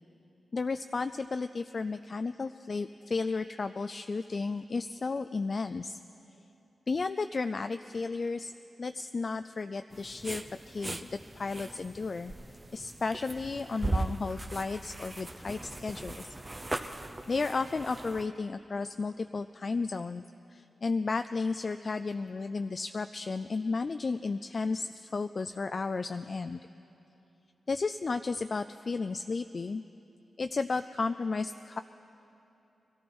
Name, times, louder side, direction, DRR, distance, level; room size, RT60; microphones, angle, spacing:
voice 1, 0.5-6.0 6.9-8.5 8.8-12.3 12.7-16.3 17.3-20.2 20.5-26.6 27.7-29.8 30.4-31.8, left 4 dB, 55° left, 9 dB, 0.3 m, -33 dB
sound 1, 9.9-18.3, right 2 dB, 30° right, 0.8 m, -39 dB
21.0 x 14.0 x 4.4 m, 2.9 s
supercardioid pair, 40°, 0 cm